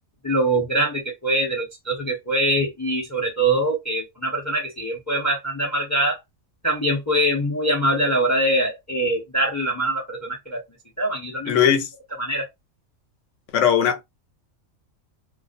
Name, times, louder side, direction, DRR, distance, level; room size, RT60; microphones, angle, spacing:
voice 1, 0.2-6.2 6.6-10.6 11.0-11.6 12.2-12.5, right 1 dB, 20° left, 0.5 m, -23 dB
voice 2, 11.5-11.9 13.5-14.0, left 8 dB, 70° left, 0.9 m, -19 dB
2.4 x 2.1 x 2.4 m
omnidirectional pair, 1.3 m